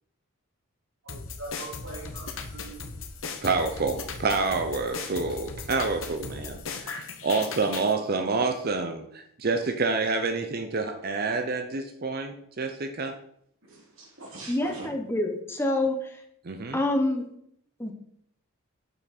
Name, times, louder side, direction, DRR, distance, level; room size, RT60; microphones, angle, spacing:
voice 1, 1.0-2.9 13.7-14.9, right 2 dB, 75° right, -2 dB, 2.5 m, -42 dB
sound 1, 1.1-7.9, left 4 dB, 70° left, 0.8 m, -38 dB
voice 2, 3.4-13.1 16.4-16.8, right 3 dB, 45° right, 6 dB, 0.6 m, -28 dB
voice 3, 14.5-16.0 16.7-17.2 17.8-17.9, left 1 dB, 10° left, 4 dB, 0.8 m, -26 dB
6.9 x 5.8 x 4.1 m, 0.70 s
head